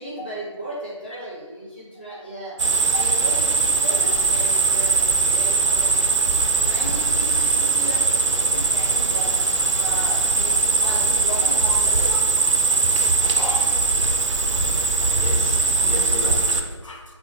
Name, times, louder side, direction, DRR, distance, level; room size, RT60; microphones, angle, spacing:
voice 1, 0.0-2.6 2.9-6.0 6.6-12.2, right 1 dB, 20° left, -7 dB, 0.5 m, -36 dB
sound 1, 2.6-16.6, right 3 dB, 75° right, 0.4 m, -20 dB
voice 2, 13.3-13.8 15.2-17.0, left 1 dB, 85° left, 0 dB, 0.7 m, -34 dB
2.9 x 2.2 x 2.9 m, 1.3 s
figure-of-eight pair, 170°, 16 cm